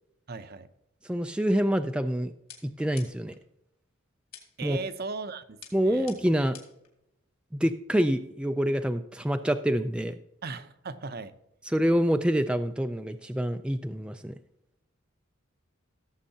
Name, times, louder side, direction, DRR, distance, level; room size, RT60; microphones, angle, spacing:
voice 1, 0.3-0.7 4.6-6.1 10.4-11.3, right 4 dB, 50° right, 11 dB, 0.7 m, -37 dB
voice 2, 1.0-2.3 2.6-3.4 4.6-4.8 5.7-6.6 7.5-10.2 11.7-14.3, equal, 5° right, 7 dB, 0.4 m, -26 dB
sound 1, 2.5-3.4 4.3-4.8 5.6-6.9, left 7 dB, 50° left, 2.5 m, -49 dB
17.0 x 7.4 x 2.8 m, 0.82 s
head